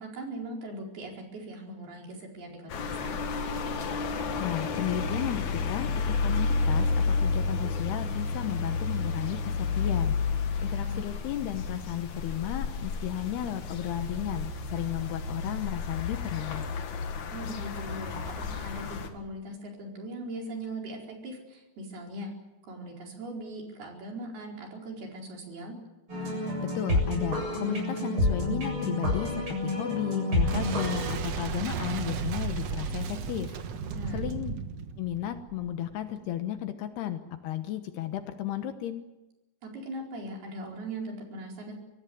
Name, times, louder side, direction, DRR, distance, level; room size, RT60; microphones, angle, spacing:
voice 1, 0.0-3.2 10.6-11.1 17.3-22.3 22.7-25.8 33.9-34.3 39.6-41.7, right 1 dB, 60° right, 0 dB, 6.3 m, -40 dB
sound 1, 2.7-19.1, left 4 dB, 55° left, 2.5 m, -31 dB
voice 2, 4.4-10.2 10.6-16.7 26.6-33.5 34.1-34.5 35.0-39.0, left 12 dB, 70° left, 9 dB, 3.0 m, -34 dB
sound 2, 26.1-31.1, left 1 dB, 25° right, 8.2 m, -29 dB
Boom, 30.4-36.0, right 5 dB, 85° right, 1.4 m, -34 dB
25.5 x 16.5 x 9.4 m, 1.1 s
omnidirectional pair, 5.1 m